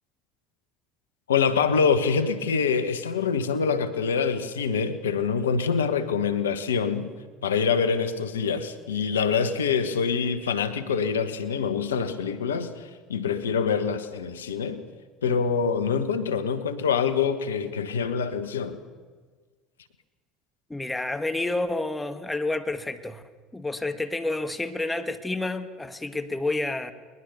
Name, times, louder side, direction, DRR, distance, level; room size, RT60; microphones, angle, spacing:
voice 1, 1.3-7.1 7.4-14.8 15.2-18.8, left 6 dB, 90° left, 10 dB, 1.3 m, -25 dB
voice 2, 20.7-23.2 23.5-26.9, left 2 dB, 10° left, 8 dB, 1.8 m, -29 dB
21.5 x 20.5 x 6.9 m, 1.5 s
hypercardioid pair, 70°, 0 cm